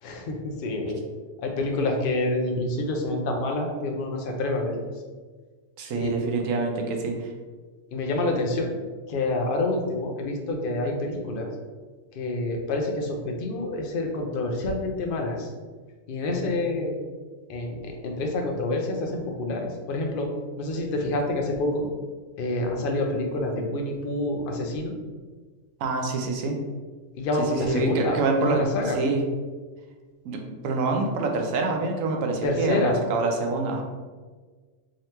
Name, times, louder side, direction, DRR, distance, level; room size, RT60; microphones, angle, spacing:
voice 1, 0.0-1.0 1.4-4.8 5.9-6.1 7.9-8.7 9.1-11.5 12.1-15.5 16.1-17.0 17.5-20.3 20.6-21.9 22.4-24.9 27.1-28.2 28.5-29.0 32.4-33.0, left 2 dB, 55° left, 2 dB, 0.7 m, -27 dB
voice 2, 5.8-7.3 25.8-26.6 27.5-28.6 29.0-29.2 30.2-33.8, right 3 dB, 85° right, 2 dB, 1.0 m, -26 dB
3.7 x 3.3 x 2.9 m, 1.4 s
omnidirectional pair, 1.3 m